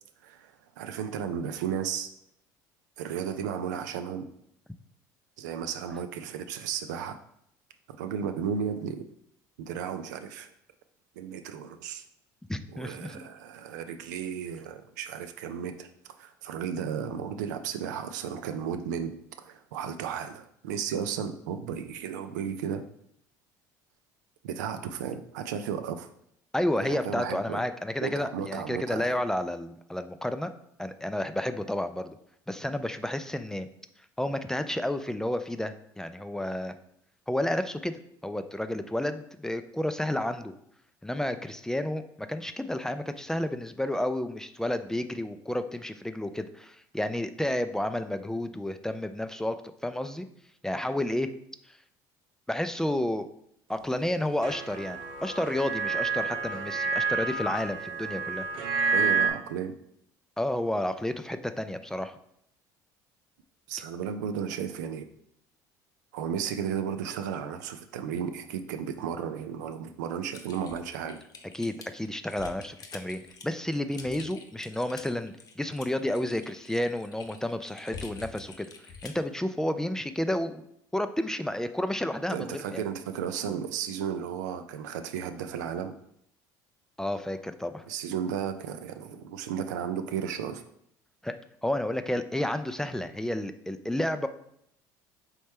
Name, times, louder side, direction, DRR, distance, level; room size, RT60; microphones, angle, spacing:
voice 1, 0.2-2.1 3.0-4.3 5.4-7.2 8.0-9.0 9.6-10.5 11.2-12.0 12.7-15.9 16.2-22.8 24.4-26.1 26.8-27.6 28.0-29.1 58.9-59.8 63.7-65.0 66.1-71.2 82.3-86.0 87.9-90.6, right 8 dB, 85° right, 8 dB, 0.4 m, -34 dB
voice 2, 12.5-13.2 26.5-30.5 30.8-32.2 32.5-33.7 34.2-36.7 37.3-40.5 41.0-49.6 49.8-50.3 50.6-51.3 51.7-51.8 52.5-53.3 53.7-58.5 60.4-62.1 71.5-80.6 80.9-82.8 87.0-87.8 91.2-91.3 91.6-94.3, left 1 dB, 5° left, 10 dB, 0.3 m, -31 dB
sound 1, 54.4-59.3, right 4 dB, 60° right, 0.8 m, -29 dB
Typing, 70.3-79.3, left 5 dB, 40° left, 0.7 m, -47 dB
4.3 x 3.1 x 3.4 m, 0.71 s
hypercardioid pair, 75°, 9 cm